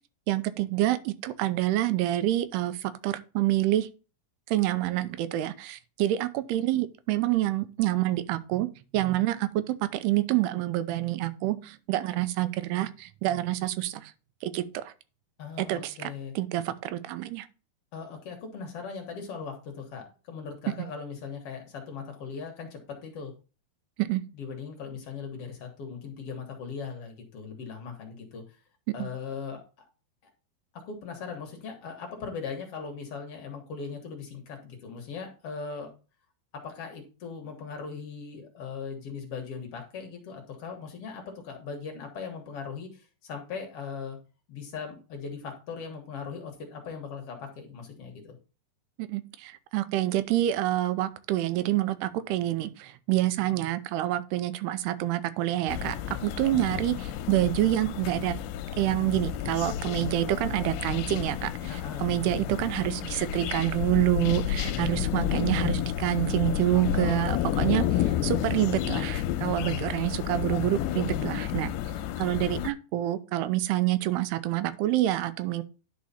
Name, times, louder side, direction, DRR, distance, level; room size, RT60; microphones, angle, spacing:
voice 1, 0.3-3.9 4.5-8.7 8.9-14.1 14.4-14.9 15.6-16.1 16.4-17.5 24.0-24.2 29.0-29.1 49.0-58.4 58.8-67.8 68.2-71.7 72.2-75.6, right 14 dB, 85° right, 2.7 m, -27 dB
voice 2, 15.4-16.3 17.9-23.3 24.3-28.4 28.9-29.9 30.7-35.9 36.5-44.2 44.5-48.4 61.7-62.1 66.9-67.3 67.7-68.7 69.4-69.9, left 5 dB, 60° left, 1.5 m, -39 dB
sound 1, 55.7-72.7, left 11 dB, 80° left, 2.4 m, -31 dB
10.5 x 4.8 x 4.1 m
omnidirectional pair, 4.7 m